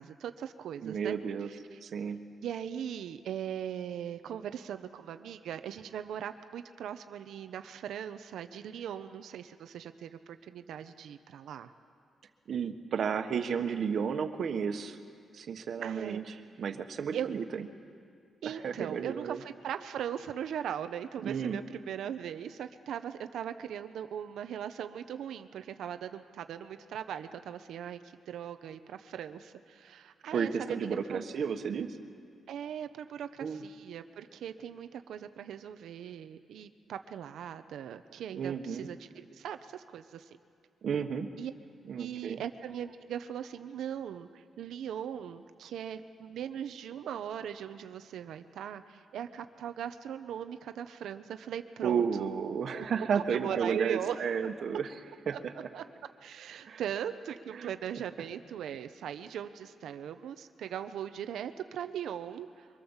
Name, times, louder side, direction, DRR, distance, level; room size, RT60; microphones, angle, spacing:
voice 1, 0.0-1.1 1.5-1.8 2.4-11.7 15.8-16.2 17.1-17.3 18.4-31.3 32.5-40.3 41.4-41.5 41.9-52.3 52.7-54.2 54.7-54.8 55.3-55.4 55.7-55.8 56.2-62.7, right 9 dB, 90° right, 9 dB, 0.9 m, -39 dB
voice 2, 0.8-1.5 1.8-2.2 12.5-15.0 15.3-16.2 16.6-17.7 18.4-19.4 21.2-21.6 30.3-32.0 33.4-33.6 38.3-38.9 40.8-41.3 41.9-42.4 51.8-54.9 55.3-55.4 56.7-56.8 57.5-57.7, right 6 dB, 60° right, 7 dB, 1.4 m, -32 dB
24.0 x 23.0 x 7.3 m, 2.2 s
cardioid pair, 130°, 0 cm